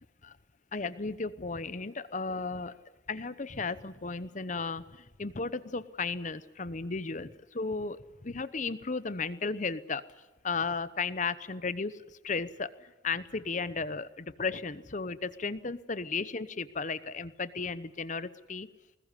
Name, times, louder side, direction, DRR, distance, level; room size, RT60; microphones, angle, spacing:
voice 1, 0.7-10.0 10.4-18.7, left 4 dB, 40° left, 16 dB, 0.9 m, -35 dB
20.5 x 20.0 x 9.9 m, 1.0 s
head